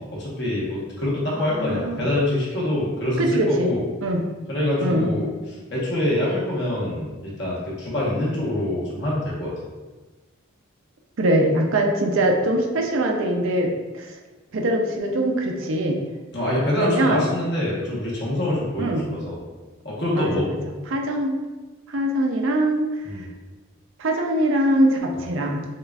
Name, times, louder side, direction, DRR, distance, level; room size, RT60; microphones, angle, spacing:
voice 1, 0.2-3.8 4.5-5.3 5.7-9.5 16.3-19.4 19.8-20.5 23.0-23.2 25.2-25.3, left 1 dB, 55° left, -6 dB, 1.2 m, -25 dB
voice 2, 1.3-2.1 3.2-3.7 4.0-4.2 4.8-5.1 11.2-14.2 14.5-16.0 16.8-17.3 18.8-19.0 20.1-20.6 20.9-21.4 21.9-23.0 24.0-25.6, right 1 dB, 75° right, 2 dB, 0.5 m, -22 dB
6.5 x 2.4 x 2.4 m, 1.2 s
head